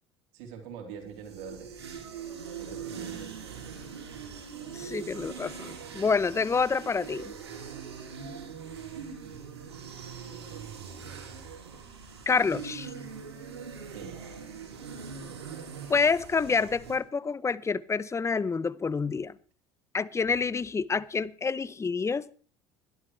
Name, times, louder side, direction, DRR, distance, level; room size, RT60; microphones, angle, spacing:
voice 1, 0.3-1.7 2.6-3.3 13.9-14.2, right 6 dB, 70° right, 3.6 m, -43 dB
sound 1, 1.0-17.0, right 6 dB, 85° right, 2.9 m, -42 dB
voice 2, 4.7-7.3 12.3-12.9 15.9-19.3 19.9-22.4, left 5 dB, 20° left, 0.7 m, -28 dB
22.0 x 12.0 x 3.2 m
hypercardioid pair, 70°, 13 cm